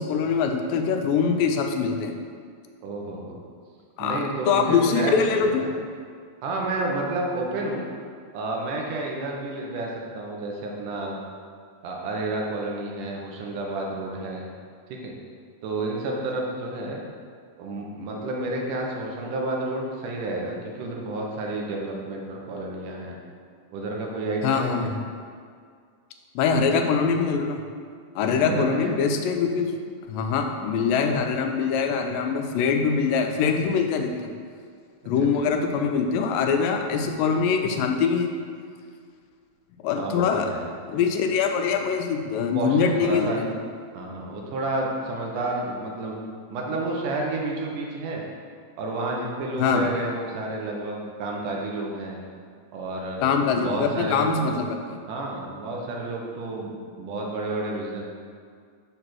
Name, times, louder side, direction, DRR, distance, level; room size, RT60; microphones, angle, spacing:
voice 1, 0.0-2.2 4.0-5.6 24.4-24.9 26.4-27.6 28.2-29.7 30.1-34.1 35.1-38.3 39.8-40.5 40.9-43.5 49.6-49.9 53.2-55.0, left 5 dB, 85° left, 4 dB, 2.3 m, -23 dB
voice 2, 2.8-3.4 4.0-5.7 6.4-7.9 8.3-11.2 11.8-14.4 14.9-15.1 15.6-17.0 17.6-23.2 23.7-24.9 28.4-28.9 40.0-40.6 42.5-43.4 43.9-46.2 46.5-48.2 48.8-52.2 52.7-53.2 53.6-54.6 55.1-58.0, right 2 dB, 75° right, -1 dB, 2.3 m, -30 dB
6.6 x 4.0 x 6.1 m, 2.1 s
omnidirectional pair, 3.9 m